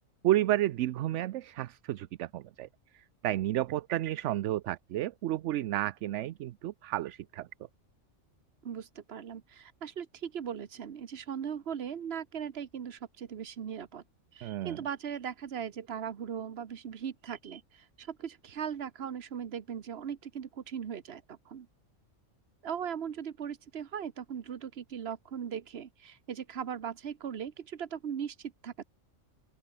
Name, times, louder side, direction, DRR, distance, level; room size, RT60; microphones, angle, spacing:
voice 1, 0.2-2.7 2.9-7.5 14.4-14.8, right 14 dB, 70° right, 0.9 m, -31 dB
voice 2, 8.6-14.0 14.3-21.7 22.6-28.8, right 8 dB, 55° right, 1.2 m, -39 dB
open air
omnidirectional pair, 1.3 m